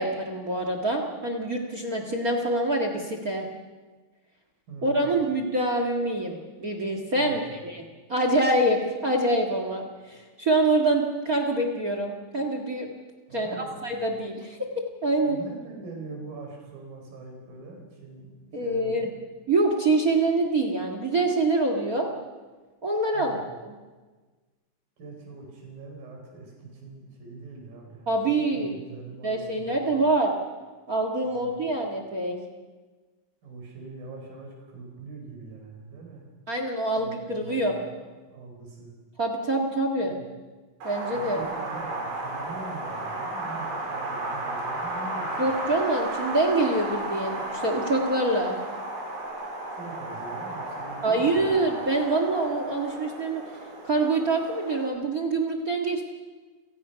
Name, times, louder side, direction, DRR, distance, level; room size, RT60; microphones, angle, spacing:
voice 1, 0.0-3.4 4.8-7.8 8.1-12.9 13.3-14.6 15.0-15.4 18.5-19.1 19.5-22.1 22.8-23.7 28.1-28.8 29.2-30.3 30.9-32.4 36.5-37.8 39.2-40.2 40.8-41.4 45.4-48.6 51.0-53.4 53.8-56.0, right 2 dB, 40° right, 4 dB, 1.3 m, -25 dB
voice 2, 4.7-5.2 7.1-7.7 13.3-13.9 15.2-19.1 23.1-23.5 25.0-30.0 31.2-31.5 33.4-36.2 37.0-38.9 40.0-40.3 41.1-45.5 49.7-51.5, right 3 dB, 65° right, 1 dB, 6.4 m, -43 dB
Wind, 40.8-54.9, right 2 dB, 85° right, 6.0 m, -34 dB
29.5 x 17.5 x 5.8 m, 1.3 s
omnidirectional pair, 4.3 m